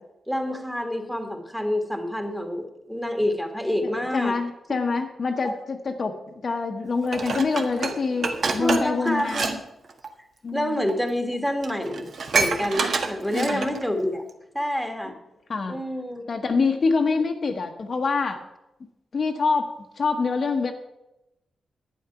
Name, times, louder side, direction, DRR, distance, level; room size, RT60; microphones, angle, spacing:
voice 1, 0.3-4.3 4.7-4.8 5.4-5.5 8.6-9.6 10.5-14.2 14.5-15.1 15.7-16.3, equal, 5° right, 4 dB, 1.5 m, -27 dB
voice 2, 3.8-6.1 6.4-9.6 10.4-10.8 13.3-13.7 15.5-15.8 16.3-18.4 19.1-19.7 20.0-20.7, left 4 dB, 40° left, 4 dB, 1.0 m, -25 dB
Dishes pots and pans, 7.1-9.6 9.8-10.1 10.9-11.0 11.3-11.4 11.6-13.9 14.3-14.4, right 4 dB, 50° right, 1.3 m, -27 dB
11.0 x 9.6 x 5.8 m, 0.90 s
wide cardioid pair, 160°, 0 cm